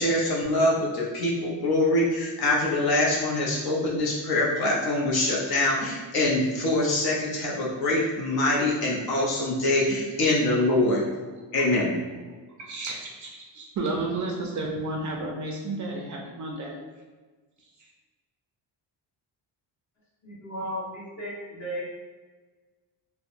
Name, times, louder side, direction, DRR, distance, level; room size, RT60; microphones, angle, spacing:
voice 1, 0.0-11.0 11.5-11.9, left 1 dB, 55° left, 0.6 m, -24 dB
voice 2, 12.6-16.8, right 2 dB, 45° right, 0.4 m, -32 dB
voice 3, 20.2-21.9, equal, 40° left, 1.1 m, -35 dB
2.7 x 2.1 x 2.5 m
cardioid pair, 100°, 44 cm